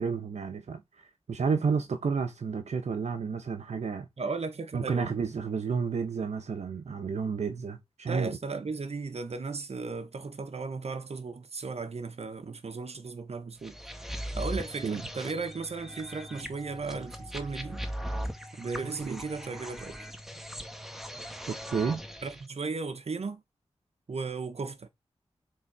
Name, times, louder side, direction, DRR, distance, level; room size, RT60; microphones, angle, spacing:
voice 1, 0.0-4.1 4.7-8.4 14.8-15.0 19.1-19.2 21.7-22.0, right 5 dB, 80° right, 1.0 m, -31 dB
voice 2, 4.2-5.1 8.1-13.8 14.4-17.8 18.5-20.0 22.2-23.4 24.1-24.9, right 4 dB, 65° right, 1.2 m, -36 dB
sound 1, 13.6-22.4, equal, 5° right, 1.5 m, -39 dB
6.8 x 3.8 x 4.8 m
cardioid pair, 40°, 11 cm